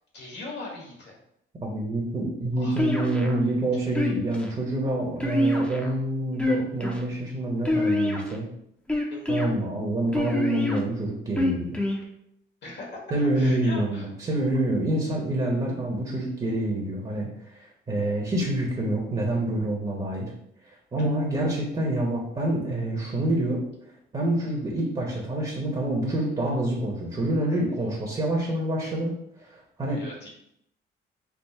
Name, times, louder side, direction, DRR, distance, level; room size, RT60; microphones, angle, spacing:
voice 1, 0.1-1.2 2.6-2.8 9.1-9.3 12.6-13.0 13.3-14.1 29.8-30.3, left 2 dB, 60° left, -2 dB, 1.4 m, -40 dB
voice 2, 1.6-8.5 9.3-11.8 13.1-20.3 20.6-23.6 24.1-29.1 29.4-30.0, right 1 dB, 25° right, -2 dB, 0.9 m, -27 dB
sound 1, 2.8-3.4 4.0-4.5 5.2-5.9 6.3-7.0 7.7-8.4 8.9-9.5 10.1-10.8 11.4-12.0, left 1 dB, 5° left, 0.7 m, -25 dB
3.5 x 2.1 x 4.2 m, 0.74 s
cardioid pair, 90°, 20 cm